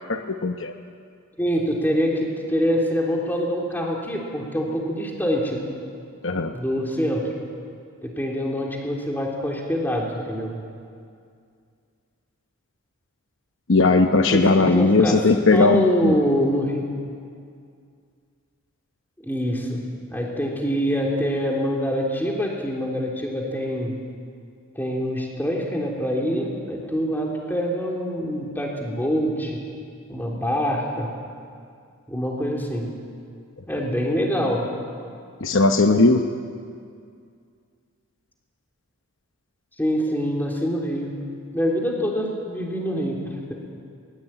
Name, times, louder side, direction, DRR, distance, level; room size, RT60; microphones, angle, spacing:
voice 1, 0.1-0.7 6.2-6.5 13.7-16.1 35.4-36.3, left 3 dB, 60° left, 6 dB, 0.9 m, -18 dB
voice 2, 1.4-5.6 6.5-7.2 8.0-10.5 14.3-15.2 15.5-16.8 19.2-19.8 20.1-24.0 24.7-29.6 30.1-31.1 32.1-32.9 33.7-34.7 39.8-41.1 41.5-43.2 43.5-43.6, equal, 10° left, -1 dB, 3.5 m, -25 dB
22.0 x 21.0 x 9.1 m, 2.3 s
head